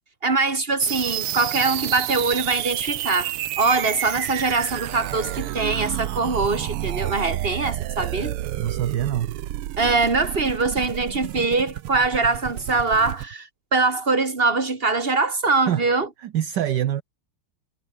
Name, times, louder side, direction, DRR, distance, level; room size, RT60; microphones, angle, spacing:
voice 1, 0.2-8.4 9.8-16.1, right 3 dB, 25° right, 3.0 m, -23 dB
sound 1, 0.8-13.3, right 14 dB, 90° right, 1.8 m, -30 dB
voice 2, 8.6-9.4 15.7-15.8 16.2-17.0, right 11 dB, 60° right, 1.4 m, -25 dB
omnidirectional pair, 2.4 m